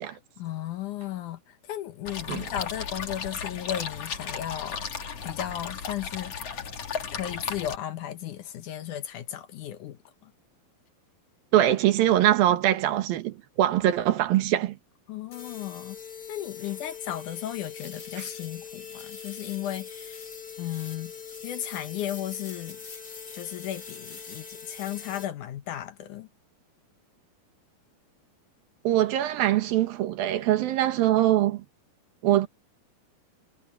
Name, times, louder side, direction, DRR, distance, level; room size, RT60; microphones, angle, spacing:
voice 1, 0.1-4.9 5.2-6.7 7.1-10.3 15.1-16.0 16.3-20.2 20.6-21.1 21.4-22.8 23.3-26.3, left 12 dB, 70° left, 2.2 m, -35 dB
sound 1, 2.1-7.8, left 6 dB, 45° left, 2.9 m, -35 dB
voice 2, 11.5-14.8 28.8-31.6 32.2-32.5, right 13 dB, 80° right, 3.0 m, -23 dB
sound 2, 15.3-25.3, left 7 dB, 30° left, 2.7 m, -42 dB
omnidirectional pair, 4.2 m